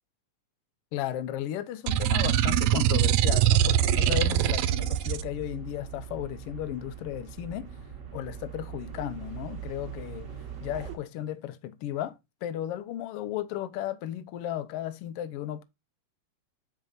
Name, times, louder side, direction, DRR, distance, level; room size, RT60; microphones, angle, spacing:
voice 1, 0.9-7.7 8.1-15.6, left 12 dB, 80° left, 1.3 m, -35 dB
sound 1, 1.9-5.2, right 11 dB, 80° right, 1.8 m, -23 dB
sound 2, 3.6-11.0, right 8 dB, 40° right, 1.2 m, -41 dB
9.2 x 4.6 x 3.9 m
omnidirectional pair, 3.4 m